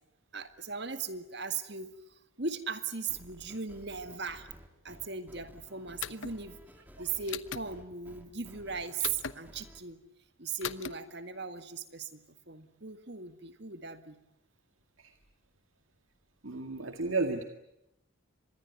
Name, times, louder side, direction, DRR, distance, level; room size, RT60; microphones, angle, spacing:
voice 1, 0.3-1.9 2.4-4.5 4.8-6.6 7.0-10.0 10.4-14.2, right 5 dB, 55° right, 10 dB, 1.9 m, -38 dB
sound 1, 3.1-9.8, equal, 10° right, 3.0 m, -54 dB
sound 2, 6.0-6.4 7.3-7.7 9.0-9.4 10.6-10.9, left 8 dB, 70° left, 1.0 m, -37 dB
voice 2, 16.4-17.4, right 3 dB, 85° right, 6 dB, 2.0 m, -32 dB
25.5 x 21.0 x 9.5 m, 0.85 s
head